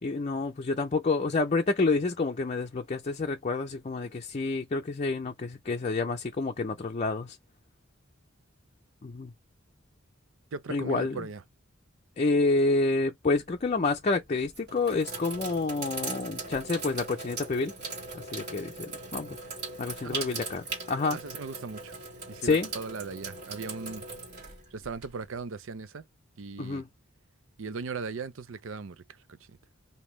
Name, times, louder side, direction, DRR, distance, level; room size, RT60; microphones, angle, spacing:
voice 1, 0.0-7.4 9.0-9.3 10.7-11.2 12.2-17.7 18.1-19.4 19.8-20.6 20.9-21.2 22.4-22.7 26.6-26.9, left 3 dB, 35° left, 0.5 m, -28 dB
voice 2, 10.5-11.4 20.0-20.4 21.1-21.9 22.3-24.0 24.7-26.0 26.4-26.8 27.6-29.0 29.3-29.4, right 4 dB, 75° right, 0.5 m, -38 dB
Sink (filling or washing), 13.5-13.8 14.4-25.3, right 3 dB, 55° right, 1.8 m, -39 dB
5.2 x 2.8 x 3.1 m
head